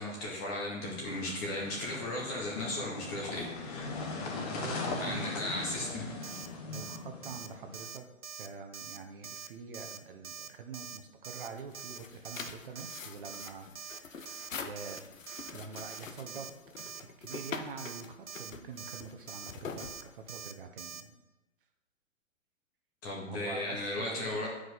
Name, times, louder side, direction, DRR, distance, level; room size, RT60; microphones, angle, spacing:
voice 1, 0.0-3.9 5.0-6.4 23.0-24.5, left 1 dB, 15° left, -3 dB, 0.6 m, -36 dB
sound 1, 0.8-7.8, left 3 dB, 30° left, 1.1 m, -40 dB
voice 2, 4.4-6.0 6.6-8.1 8.4-15.2 15.5-21.2 23.3-24.4, right 5 dB, 40° right, 5 dB, 0.9 m, -45 dB
Alarm, 6.2-6.5 6.7-7.0 7.2-7.5 7.7-8.0 8.2-8.5 8.7-9.0 9.2-9.5 9.7-10.0 10.2-10.5 10.7-11.0 11.2-11.5 11.7-12.0 12.2-12.5 12.7-13.0 13.2-13.5 13.7-14.0 14.3-14.5 14.8-15.0 15.3-15.5 15.8-16.0 16.3-16.5 16.8-17.0 17.3-17.5 17.8-18.0 18.3-18.5 18.8-19.0 19.3-19.5 19.8-20.0 20.3-20.5 20.8-21.0, right 7 dB, 80° right, 0.7 m, -44 dB
sound 2, 11.5-20.6, left 5 dB, 75° left, 0.8 m, -45 dB
9.1 x 4.8 x 4.0 m, 1.0 s
figure-of-eight pair, 135°, 39 cm